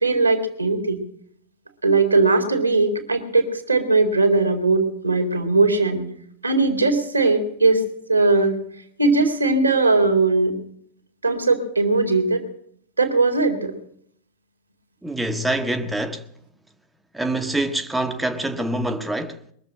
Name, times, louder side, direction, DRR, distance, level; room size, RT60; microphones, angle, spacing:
voice 1, 0.0-1.0 1.8-6.0 6.4-7.8 8.1-8.6 9.0-10.5 11.2-12.4 13.0-13.7, right 3 dB, 85° right, 2.1 m, -19 dB
voice 2, 15.0-16.3 17.1-19.4, right 1 dB, 5° right, 1.0 m, -25 dB
21.5 x 7.2 x 7.6 m
figure-of-eight pair, 90°, 0 cm